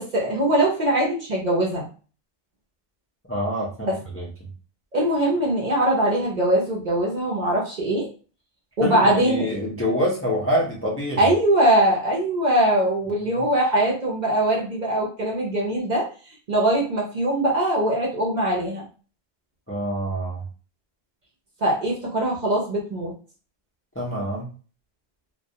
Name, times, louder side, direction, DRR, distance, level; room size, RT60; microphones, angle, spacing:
voice 1, 0.0-1.9 3.8-4.0 4.9-8.1 8.8-9.5 11.2-18.9 21.6-23.1, right 1 dB, 50° right, -3 dB, 0.6 m, -22 dB
voice 2, 3.3-4.3 8.8-11.2 13.1-13.4 19.7-20.4 24.0-24.5, equal, 20° left, -4 dB, 0.4 m, -26 dB
2.3 x 2.1 x 2.7 m, 0.38 s
omnidirectional pair, 1.1 m